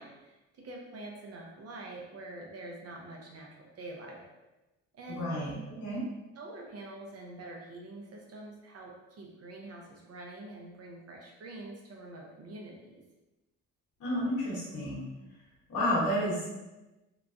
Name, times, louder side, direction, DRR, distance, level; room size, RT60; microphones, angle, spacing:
voice 1, 0.0-4.2 4.9-5.3 6.4-13.0, right 2 dB, 55° right, 0 dB, 0.7 m, -45 dB
voice 2, 5.1-6.0 14.0-15.1 15.7-16.5, equal, 80° left, -7 dB, 1.2 m, -31 dB
2.9 x 2.3 x 2.5 m, 1.0 s
cardioid pair, 90°, 30 cm